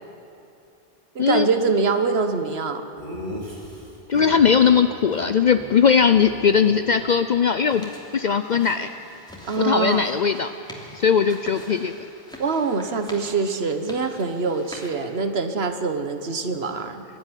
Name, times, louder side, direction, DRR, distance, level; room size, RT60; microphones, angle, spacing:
voice 1, 1.1-2.9 9.5-10.1 12.4-17.0, right 4 dB, 80° right, 8 dB, 1.4 m, -24 dB
Laughter, 3.0-4.7 5.1-5.2 5.5-5.7 6.0-7.5, equal, 50° right, 3.0 m, -37 dB
voice 2, 4.1-8.9 9.6-10.5 10.9-11.9, left 6 dB, 50° left, 9 dB, 0.7 m, -19 dB
sound 1, 7.7-14.9, equal, 5° left, 2.9 m, -44 dB
22.5 x 12.5 x 9.9 m, 2.6 s
omnidirectional pair, 1.0 m